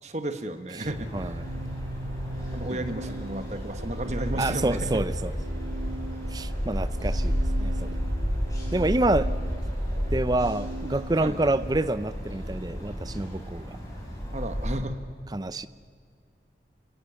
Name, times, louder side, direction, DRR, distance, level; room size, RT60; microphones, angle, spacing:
voice 1, 0.0-1.4 2.5-5.0 11.2-11.4 14.3-15.0, right 1 dB, 40° right, 8 dB, 1.4 m, -33 dB
sound 1, 0.8-14.8, equal, 20° left, 5.9 m, -31 dB
voice 2, 1.1-1.5 2.7-2.9 4.4-5.3 6.3-7.9 8.7-9.3 10.1-13.8 15.3-15.7, right 2 dB, 20° right, 14 dB, 0.5 m, -27 dB
Organ, 1.1-11.9, right 2 dB, 85° right, 0.8 m, -41 dB
29.5 x 17.5 x 7.1 m, 2.3 s
head